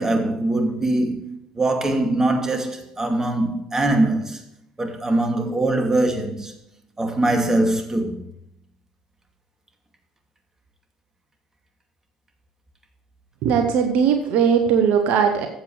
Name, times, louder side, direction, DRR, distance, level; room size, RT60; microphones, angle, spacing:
voice 1, 0.0-4.4 4.8-6.5 7.0-8.2, right 2 dB, 20° right, 2.4 m, -22 dB
voice 2, 13.4-15.5, right 7 dB, 65° right, 1.1 m, -19 dB
14.0 x 7.9 x 3.3 m
hypercardioid pair, 60°, 3 cm